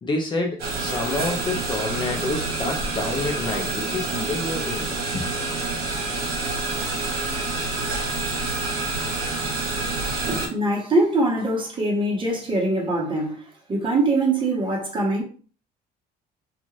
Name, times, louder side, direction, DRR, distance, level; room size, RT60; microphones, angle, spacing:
voice 1, 0.0-5.3, left 2 dB, 30° left, 0.5 m, -28 dB
sound 1, 0.6-10.5, right 3 dB, 65° right, 1.1 m, -27 dB
voice 2, 10.2-15.2, right 2 dB, 30° right, 1.1 m, -23 dB
2.5 x 2.4 x 3.0 m
cardioid pair, 110°, 17 cm